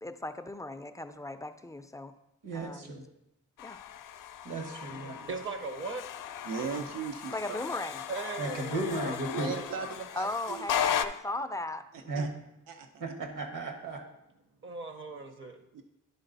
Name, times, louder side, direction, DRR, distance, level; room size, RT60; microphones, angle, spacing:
voice 1, 0.0-2.1 2.5-2.9 3.6-3.8 7.3-8.0 10.2-11.8, left 2 dB, 10° left, 8 dB, 0.3 m, -37 dB
voice 2, 2.4-3.0 4.4-5.2 8.4-9.5 12.1-12.3 13.0-14.0, right 2 dB, 70° right, 3 dB, 1.5 m, -35 dB
sound 1, 3.6-11.0, left 9 dB, 75° left, 0.5 m, -36 dB
voice 3, 4.9-6.1 8.1-9.2 9.5-9.6 14.6-15.6, right 3 dB, 40° right, 7 dB, 0.7 m, -39 dB
voice 4, 6.4-7.4 9.3-10.7 11.9-12.3 12.7-13.0 15.7-15.8, right 6 dB, 85° right, 6 dB, 0.7 m, -38 dB
10.5 x 3.9 x 4.0 m, 0.85 s
cardioid pair, 115°, 32 cm